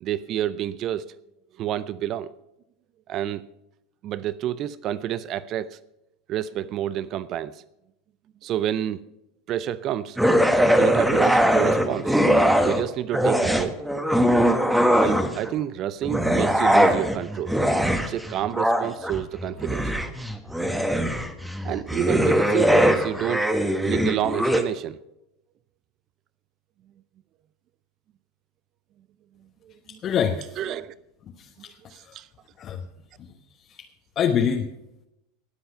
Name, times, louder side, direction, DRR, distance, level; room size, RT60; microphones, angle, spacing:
voice 1, 0.0-1.1 1.6-2.3 3.1-3.4 4.0-5.8 6.3-7.6 8.4-9.0 9.5-10.2 10.7-12.1 12.6-13.8 15.0-17.6 18.1-20.2 21.6-23.5 23.8-25.0 29.6-30.0 30.4-30.9 31.9-32.3, right 11 dB, 45° right, 18 dB, 0.5 m, -29 dB
sound 1, 10.2-12.8 13.1-15.5 16.0-24.6, equal, 5° right, 1.4 m, -21 dB
voice 2, 30.0-30.6 31.4-32.2 32.6-32.8 33.2-33.3 33.6-33.8 34.2-34.7, left 7 dB, 40° left, 2 dB, 1.1 m, -26 dB
19.5 x 7.8 x 5.6 m, 0.87 s
figure-of-eight pair, 80°, 0 cm